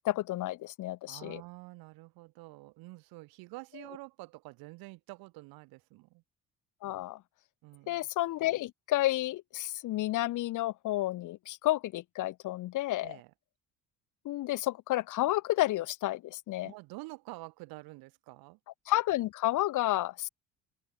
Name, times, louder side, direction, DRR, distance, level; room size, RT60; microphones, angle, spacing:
voice 1, 0.0-1.4 6.8-7.2 7.9-13.2 14.2-16.7 18.9-20.3, left 16 dB, 60° left, 0.7 m, -31 dB
voice 2, 1.1-6.2 7.6-8.1 13.0-13.3 16.6-18.6, right 22 dB, 80° right, 1.2 m, -48 dB
open air
supercardioid pair, 80°, 35 cm